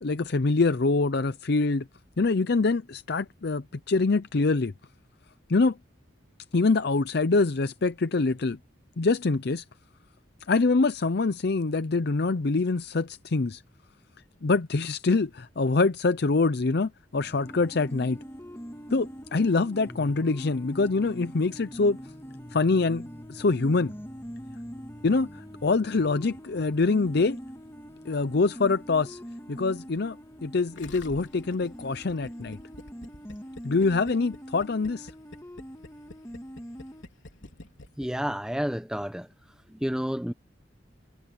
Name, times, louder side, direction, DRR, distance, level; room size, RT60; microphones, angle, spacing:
voice 1, 0.0-1.8 2.2-4.7 5.5-5.8 6.5-8.6 9.0-9.6 10.5-13.6 14.4-18.2 18.9-22.0 22.5-23.9 25.0-27.4 28.0-29.2 29.5-30.2 30.4-32.6 33.6-35.1, left 3 dB, 60° left, 0.6 m, -25 dB
sound 1, 17.1-37.0, equal, 15° left, 2.0 m, -43 dB
Gurgling, 30.8-38.3 38.6-38.7, left 2 dB, 85° left, 3.5 m, -47 dB
voice 2, 38.0-39.3 39.7-40.3, equal, 5° right, 0.9 m, -30 dB
head